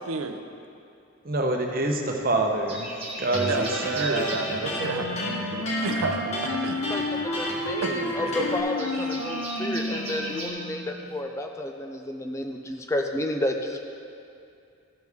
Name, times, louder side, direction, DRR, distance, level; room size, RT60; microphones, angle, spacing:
voice 1, 0.1-0.4 3.5-5.5 5.8-6.8 7.8-8.5 8.9-9.0, right 3 dB, 85° right, 6 dB, 0.6 m, -31 dB
voice 2, 1.2-2.9 3.2-3.7 4.0-5.4, right 2 dB, 45° right, 2 dB, 0.9 m, -27 dB
sound 1, 1.5-2.2 2.5-4.7 6.3-10.5, right 1 dB, 25° right, 1.5 m, -37 dB
Electric guitar, 3.3-8.6, left 1 dB, 30° left, 1.2 m, -33 dB
Wind instrument woodwind instrument, 4.8-11.0, left 1 dB, 85° left, 0.8 m, -31 dB
voice 3, 6.9-13.8, left 1 dB, 15° left, 3 dB, 0.4 m, -31 dB
14.5 x 6.3 x 3.6 m, 2.5 s
head